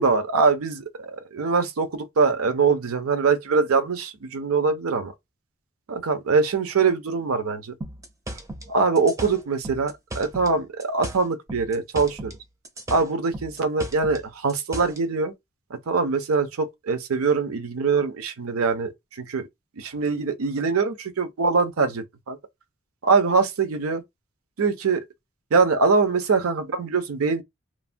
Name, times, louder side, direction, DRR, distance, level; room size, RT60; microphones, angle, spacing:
voice 1, 0.0-5.1 5.9-7.7 8.7-12.3 12.9-15.3 15.9-19.4 19.8-22.4 23.0-24.0 24.6-25.0 25.5-27.4, right 4 dB, 80° right, 0.6 m, -23 dB
sound 1, 7.8-10.5 10.8-12.4 12.6-15.0, right 1 dB, 15° right, 0.4 m, -36 dB
3.1 x 2.1 x 2.5 m
head